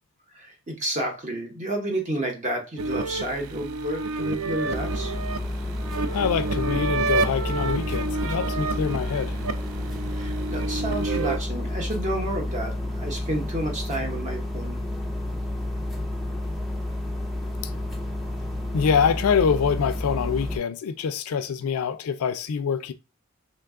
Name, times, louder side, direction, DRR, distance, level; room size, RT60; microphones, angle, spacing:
voice 1, 0.3-5.1 10.1-14.8, right 1 dB, 35° right, 0.8 m, -30 dB
sound 1, 2.8-11.4, right 3 dB, 70° right, 0.3 m, -29 dB
sound 2, 4.7-20.6, left 1 dB, ahead, 0.4 m, -30 dB
voice 2, 6.1-9.4 18.7-22.9, left 6 dB, 85° left, 0.4 m, -25 dB
3.1 x 2.3 x 3.5 m
head